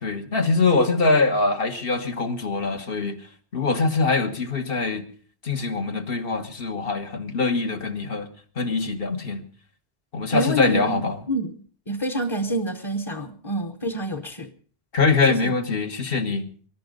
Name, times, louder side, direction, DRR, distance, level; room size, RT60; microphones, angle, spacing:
voice 1, 0.0-3.2 3.5-5.1 5.4-8.3 8.6-9.4 10.1-11.2 14.9-16.5, left 3 dB, 60° left, 1.6 m, -23 dB
voice 2, 10.3-14.5 15.3-15.5, right 1 dB, 30° left, 1.0 m, -28 dB
21.0 x 11.5 x 5.2 m
omnidirectional pair, 1.1 m